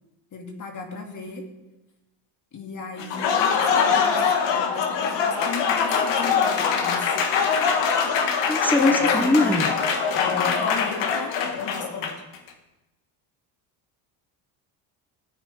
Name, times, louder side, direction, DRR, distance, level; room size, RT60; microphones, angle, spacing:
voice 1, 0.3-1.5 2.5-4.2 4.5-7.2 8.7-9.5 10.1-12.2, left 4 dB, 40° left, 3 dB, 2.2 m, -36 dB
Applause, 3.0-12.4, left 6 dB, 65° left, 1.6 m, -23 dB
voice 2, 8.5-9.7, left 1 dB, 5° left, 4 dB, 0.8 m, -21 dB
15.0 x 9.1 x 3.3 m, 0.99 s
cardioid pair, 110°, 47 cm